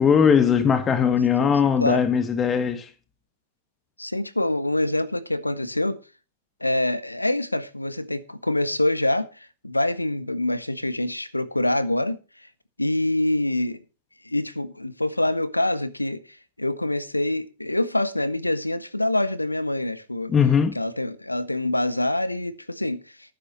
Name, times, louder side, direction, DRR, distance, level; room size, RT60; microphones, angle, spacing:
voice 1, 0.0-2.9 20.3-20.8, left 7 dB, 20° left, 1.5 m, -19 dB
voice 2, 1.4-2.0 4.0-6.0 6.6-12.2 12.8-13.8 14.2-16.2 16.6-20.3 20.7-23.0, left 1 dB, 85° left, 1.3 m, -25 dB
18.5 x 10.0 x 3.0 m
figure-of-eight pair, 100°, 0 cm